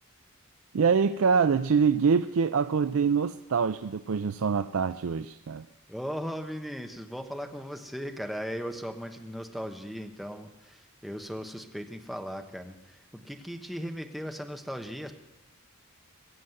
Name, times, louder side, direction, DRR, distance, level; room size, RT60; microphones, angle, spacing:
voice 1, 0.7-5.7, right 5 dB, 65° right, 11 dB, 0.4 m, -25 dB
voice 2, 5.9-15.1, equal, ahead, 4 dB, 1.1 m, -37 dB
21.5 x 7.6 x 7.8 m, 0.95 s
head